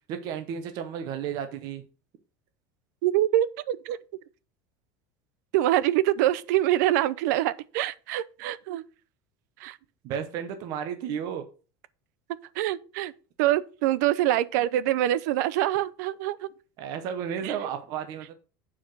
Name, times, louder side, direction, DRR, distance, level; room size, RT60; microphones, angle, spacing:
voice 1, 0.1-1.8 10.0-11.4 16.8-18.3, right 8 dB, 45° right, 0.8 m, -33 dB
voice 2, 3.0-4.0 5.5-8.8 9.6-9.8 12.6-13.1 13.4-16.5 17.4-17.5, right 14 dB, 75° right, 0.7 m, -25 dB
8.7 x 4.8 x 6.1 m
cardioid pair, 180°, 9 cm